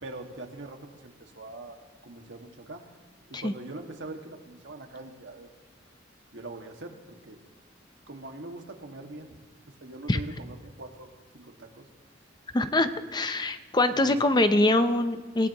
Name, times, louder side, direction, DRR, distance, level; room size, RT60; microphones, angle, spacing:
voice 1, 0.0-1.8 2.0-2.8 3.3-5.5 6.3-6.9 7.2-7.4 8.1-9.4 9.8-11.1 11.3-11.9 12.9-13.1 13.9-14.4, right 2 dB, 70° right, 3 dB, 1.9 m, -42 dB
voice 2, 12.5-15.5, left 2 dB, 20° left, 10 dB, 0.6 m, -24 dB
27.5 x 16.5 x 3.0 m, 1.3 s
head